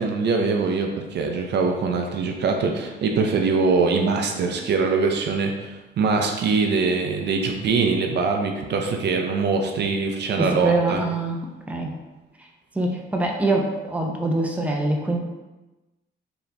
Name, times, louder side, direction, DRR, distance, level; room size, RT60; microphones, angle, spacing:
voice 1, 0.0-11.0, right 4 dB, 60° right, 3 dB, 0.5 m, -23 dB
voice 2, 10.4-11.9 12.7-15.2, right 2 dB, 5° right, 0 dB, 0.6 m, -24 dB
3.8 x 2.9 x 3.3 m, 1.1 s
cardioid pair, 90°, 20 cm